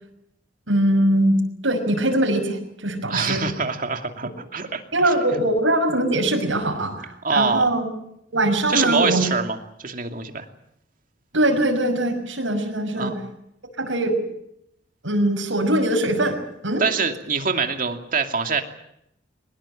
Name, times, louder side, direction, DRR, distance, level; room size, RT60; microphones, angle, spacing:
voice 1, 0.7-3.4 4.9-7.9 8.3-9.2 11.3-13.1 13.8-14.2 15.0-16.4 16.6-16.8, right 1 dB, 85° right, 2 dB, 6.2 m, -21 dB
voice 2, 3.1-5.1 7.2-7.6 8.7-10.5 13.0-13.1 16.8-18.6, right 4 dB, 45° right, 5 dB, 2.6 m, -25 dB
23.0 x 20.5 x 8.9 m, 0.77 s
head